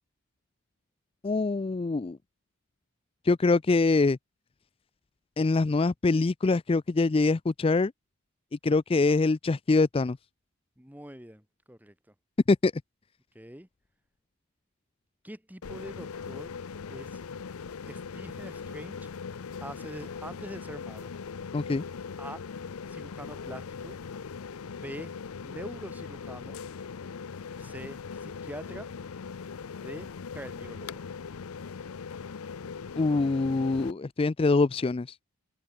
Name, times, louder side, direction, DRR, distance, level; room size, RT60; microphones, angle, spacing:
voice 1, 1.2-2.2 3.2-4.2 5.4-7.9 8.6-10.2 12.5-12.7 21.5-21.8 33.0-35.2, left 3 dB, 25° left, 0.4 m, -24 dB
voice 2, 10.8-11.9 13.3-13.7 15.2-16.6 16.9-17.2 17.9-19.1 19.6-21.1 22.2-22.4 22.9-24.0 24.7-25.1 25.4-26.6 27.6-28.9 29.8-31.0, right 1 dB, 10° right, 1.9 m, -44 dB
sound 1, 15.6-33.9, left 5 dB, 85° left, 0.6 m, -40 dB
open air
head